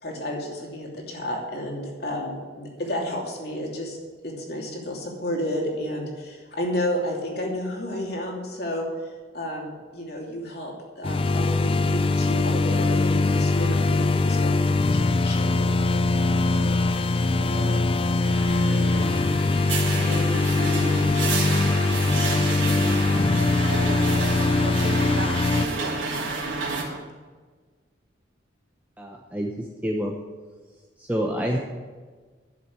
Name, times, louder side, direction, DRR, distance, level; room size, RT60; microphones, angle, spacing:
voice 1, 0.0-4.0 4.2-8.9 9.3-15.7, left 1 dB, 55° left, -1 dB, 2.9 m, -31 dB
sound 1, 11.0-25.7, left 3 dB, 30° left, 0.4 m, -22 dB
voice 2, 16.2-17.9 18.5-19.1 19.8-23.7 24.6-27.0, right 1 dB, 65° right, 1 dB, 2.3 m, -37 dB
sound 2, 18.2-26.8, right 3 dB, 80° right, 2.7 m, -30 dB
voice 3, 29.0-30.1 31.0-31.6, equal, 10° right, 0 dB, 0.9 m, -28 dB
11.0 x 7.7 x 8.2 m, 1.4 s
head